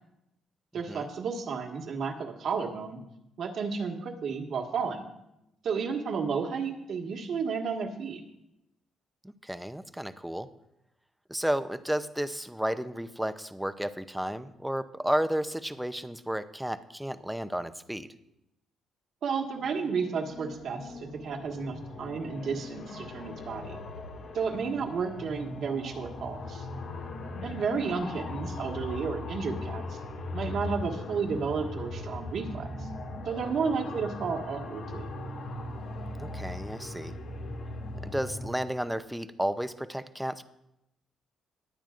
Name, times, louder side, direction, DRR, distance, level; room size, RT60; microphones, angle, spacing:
voice 1, 0.7-3.0 3.4-5.1 5.6-8.2 19.2-23.8 24.3-26.7 27.4-30.0 30.3-32.9 33.2-35.1, right 5 dB, 65° right, 2 dB, 1.7 m, -32 dB
voice 2, 9.4-10.5 11.3-18.1 36.2-37.1 38.0-40.4, equal, 5° right, 11 dB, 0.7 m, -32 dB
sound 1, 19.5-38.5, left 2 dB, 75° left, 2.2 m, -39 dB
21.0 x 9.0 x 2.5 m, 0.86 s
cardioid pair, 90°, 0 cm